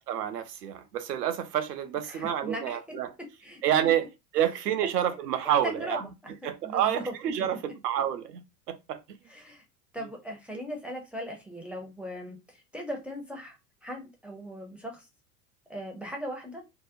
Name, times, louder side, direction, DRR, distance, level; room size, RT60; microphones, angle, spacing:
voice 1, 0.1-3.1 3.6-4.0 4.3-6.1 6.4-8.4 8.7-9.0, right 10 dB, 80° right, 0.6 m, -28 dB
voice 2, 2.1-3.0 3.4-3.6 4.8-5.2 5.6-7.1 9.3-9.6 9.9-15.1 15.7-16.6, equal, 5° right, 0.5 m, -39 dB
2.7 x 2.0 x 2.5 m
hypercardioid pair, 85°, 47 cm